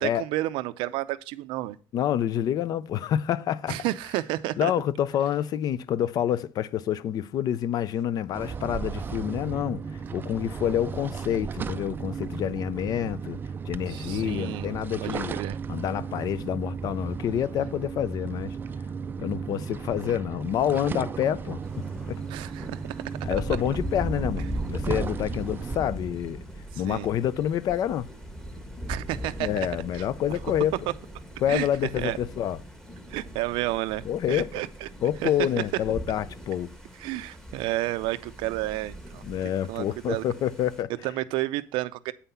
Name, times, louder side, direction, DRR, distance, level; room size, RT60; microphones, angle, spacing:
voice 1, 0.0-1.8 3.7-4.7 13.9-14.7 15.0-15.6 22.3-23.0 26.7-27.1 28.9-29.7 29.9-30.0 31.5-31.7 32.0-32.2 33.1-34.0 34.3-34.9 35.2-35.3 37.0-39.2 39.7-40.2 41.0-42.1, right 17 dB, 90° right, 0.5 m, -31 dB
voice 2, 1.9-3.8 4.6-9.8 10.1-13.4 13.7-15.4 15.7-18.6 19.2-21.6 22.1-22.2 23.2-26.4 26.8-28.1 29.4-30.9 31.4-32.6 34.1-34.5 35.0-36.7 39.2-40.9, left 10 dB, 50° left, 0.5 m, -28 dB
sound 1, 8.3-25.8, right 6 dB, 25° right, 0.3 m, -35 dB
Thunder, 21.6-40.8, right 1 dB, 5° left, 1.2 m, -39 dB
8.3 x 5.7 x 5.5 m
cardioid pair, 140°, 8 cm